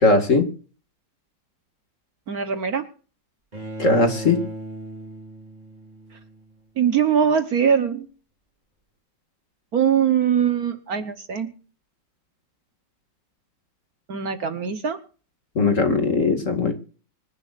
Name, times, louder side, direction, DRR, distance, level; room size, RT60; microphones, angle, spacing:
voice 1, 0.0-0.5 3.8-4.4 15.6-16.7, left 3 dB, 40° left, 5 dB, 2.4 m, -19 dB
voice 2, 2.3-2.9 6.8-8.1 9.7-11.5 14.1-15.0, right 8 dB, 55° right, 9 dB, 1.4 m, -22 dB
Bowed string instrument, 3.5-6.6, right 2 dB, 20° right, 2.9 m, -36 dB
25.5 x 10.5 x 2.5 m, 0.38 s
omnidirectional pair, 2.1 m